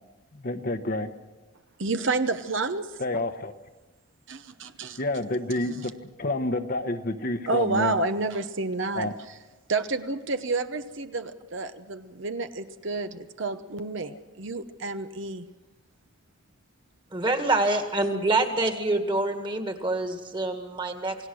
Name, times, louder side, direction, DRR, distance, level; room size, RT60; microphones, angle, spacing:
voice 1, 0.3-1.1 3.0-3.5 5.0-8.0 8.9-9.1 14.0-14.2, left 2 dB, 40° left, 7 dB, 1.0 m, -29 dB
voice 2, 1.8-2.9 4.3-5.0 7.5-9.1 9.7-15.5, right 3 dB, 60° right, 9 dB, 0.9 m, -29 dB
voice 3, 17.1-21.2, right 2 dB, 20° right, 6 dB, 1.9 m, -26 dB
28.0 x 18.0 x 6.4 m, 1.2 s
head